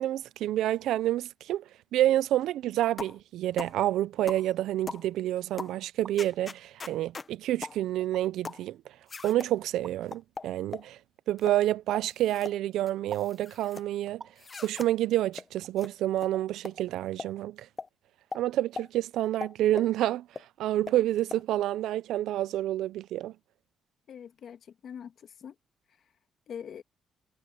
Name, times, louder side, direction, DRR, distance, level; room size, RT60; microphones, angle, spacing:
voice 1, 0.0-1.6 1.9-8.8 9.2-11.0 11.3-14.2 14.6-17.7 18.3-20.3 20.6-23.3, right 13 dB, 85° right, 0.5 m, -28 dB
sound 1, 3.0-3.2 3.6-3.8 4.3-4.5 4.9-5.1 5.6-5.8 6.2-7.3 7.6-7.8 8.4-8.7 9.1-9.5 10.1-10.9 11.4-11.6 12.1-12.6 12.9-13.8 14.4-14.9 15.3-15.5 15.8-15.9 16.2-16.3 16.6-16.8 17.2-17.3 17.8-17.9 18.3-18.4 18.8-18.9 19.4-19.9 20.4-20.5 20.9-21.0 21.3-21.4, left 4 dB, 30° left, 1.1 m, -40 dB
sound 2, 5.8-6.2 7.1-7.2 8.0-8.2 9.8-10.0 11.9-12.1 13.1-13.4 14.2-14.4 15.6-15.8 16.3-16.5 16.8-16.9, right 5 dB, 45° right, 1.9 m, -45 dB
voice 2, 24.1-25.5 26.5-26.8, left 8 dB, 60° left, 1.6 m, -43 dB
cardioid pair, 90°, 0 cm